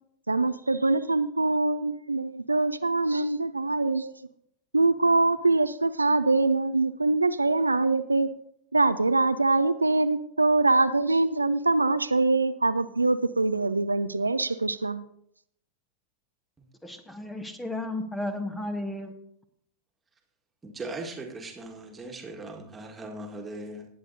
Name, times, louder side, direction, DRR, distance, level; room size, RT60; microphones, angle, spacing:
voice 1, 0.3-4.1 4.7-8.3 8.7-15.0, right 2 dB, 80° right, 12 dB, 0.4 m, -24 dB
voice 2, 16.8-19.1, left 1 dB, 10° left, 8 dB, 1.0 m, -33 dB
voice 3, 20.6-23.9, right 2 dB, 15° right, 2 dB, 1.7 m, -39 dB
18.5 x 8.3 x 2.7 m, 0.73 s
figure-of-eight pair, 90°, 0 cm